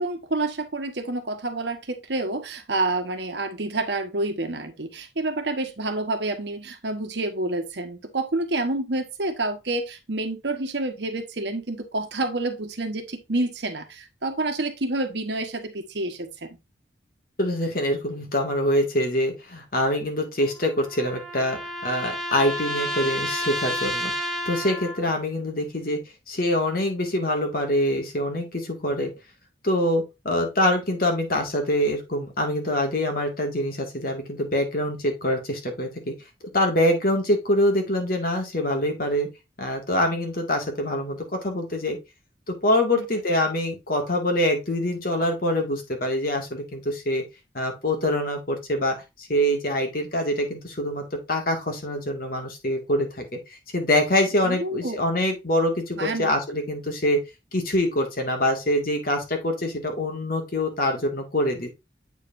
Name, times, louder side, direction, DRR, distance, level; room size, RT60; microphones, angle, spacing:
voice 1, 0.0-16.6 43.0-43.1 54.4-55.0 56.0-56.3, right 2 dB, 65° right, 1.2 m, -28 dB
voice 2, 17.4-24.1 24.5-26.0 26.3-29.1 29.6-36.1 36.5-39.3 39.6-42.0 42.5-47.2 47.5-49.0 49.3-57.2 57.5-61.7, left 1 dB, 50° left, 1.9 m, -25 dB
sound 1, 20.4-25.2, equal, ahead, 1.0 m, -31 dB
8.1 x 5.0 x 2.5 m
head